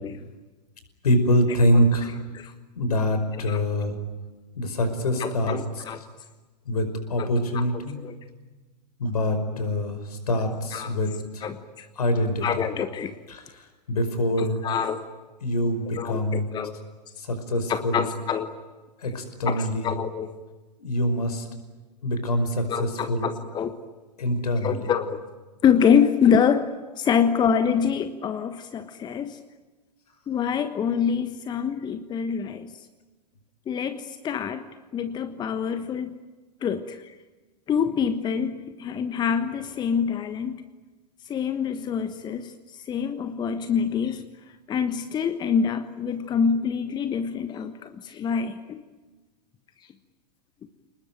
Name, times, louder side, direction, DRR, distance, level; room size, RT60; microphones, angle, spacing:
voice 1, 1.0-2.1 2.8-4.0 4.6-5.8 6.7-8.0 9.0-11.5 12.0-12.7 13.3-14.6 15.4-16.5 17.2-18.0 19.0-19.9 20.8-21.5 22.0-23.3 24.2-24.9, equal, 65° left, 8 dB, 5.3 m, -25 dB
voice 2, 5.2-6.0 7.2-7.3 7.5-7.6 8.0-8.1 10.7-10.9 11.4-11.9 12.4-13.1 14.4-15.0 15.9-16.7 17.7-18.5 19.4-20.3 22.7-23.7 24.6-25.2 25.6-29.4 30.3-32.7 33.7-34.7 34.9-36.1 36.6-37.1 37.7-40.6 41.2-44.2 44.7-48.8, left 7 dB, 20° left, 10 dB, 1.2 m, -26 dB
30.0 x 20.5 x 9.3 m, 1.2 s
figure-of-eight pair, 100°, 21 cm